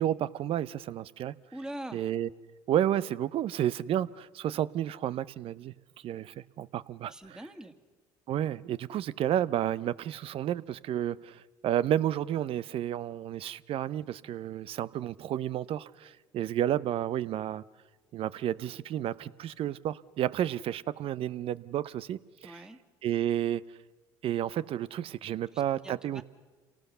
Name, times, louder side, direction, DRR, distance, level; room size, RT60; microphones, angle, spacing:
voice 1, 0.0-1.3 1.9-2.3 2.7-5.7 6.0-7.1 8.3-17.6 18.1-22.5 23.0-23.6 24.2-26.2, right 11 dB, 55° right, 0.7 m, -31 dB
voice 2, 1.5-2.1 7.0-7.8 22.4-22.8 25.3-26.2, right 1 dB, 5° right, 2.0 m, -43 dB
27.5 x 18.5 x 6.8 m
hypercardioid pair, 70°, 11 cm